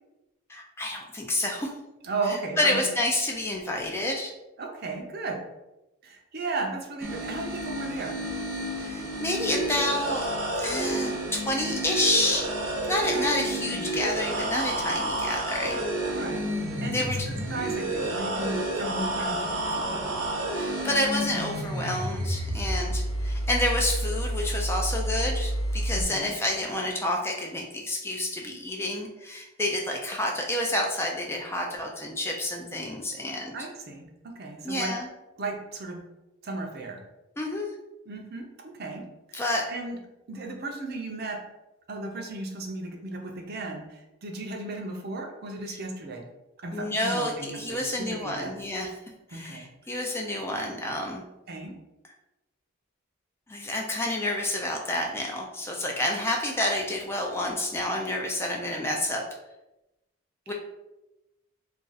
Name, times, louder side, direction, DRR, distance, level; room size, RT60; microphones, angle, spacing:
voice 1, 0.5-1.7 2.3-4.3 8.8-10.3 10.6-12.5 12.9-15.8 16.9-17.2 20.5-33.5 34.6-35.1 37.4-37.7 39.3-39.7 45.7-45.8 46.7-48.9 49.3-51.2 53.5-59.3 60.5-60.6, left 1 dB, 10° left, 0 dB, 0.3 m, -29 dB
voice 2, 2.0-2.8 4.6-5.4 6.0-8.2 12.9-14.0 16.0-16.5 16.8-17.0 17.3-20.2 25.9-26.3 33.5-34.9 35.4-36.0 36.4-37.0 38.1-38.5 38.8-40.0 40.3-41.4 41.9-46.3 46.6-48.6 49.3-49.7 51.5-51.7, right 3 dB, 50° right, 2 dB, 0.5 m, -35 dB
sound 1, 7.0-26.0, right 1 dB, 90° right, 0.9 m, -30 dB
2.4 x 2.3 x 3.9 m, 0.97 s
head